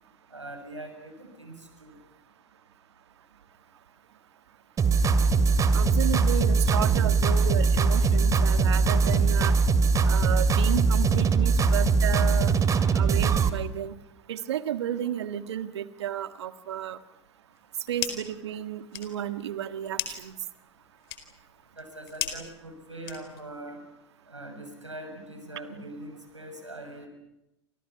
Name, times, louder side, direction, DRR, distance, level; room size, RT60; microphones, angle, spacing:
voice 1, 0.3-2.0 21.8-23.8 24.3-27.1, right 1 dB, 90° right, 6 dB, 7.0 m, -42 dB
sound 1, 4.8-13.5, right 4 dB, 20° right, 2.3 m, -21 dB
voice 2, 5.7-9.6 10.0-12.5 12.9-14.0 14.3-17.0 17.9-20.4, right 10 dB, 65° right, 10 dB, 1.6 m, -32 dB
sound 2, 17.5-18.4 18.7-23.6, left 11 dB, 60° left, 4.4 m, -37 dB
29.5 x 28.0 x 5.9 m, 0.87 s
figure-of-eight pair, 90°, 15 cm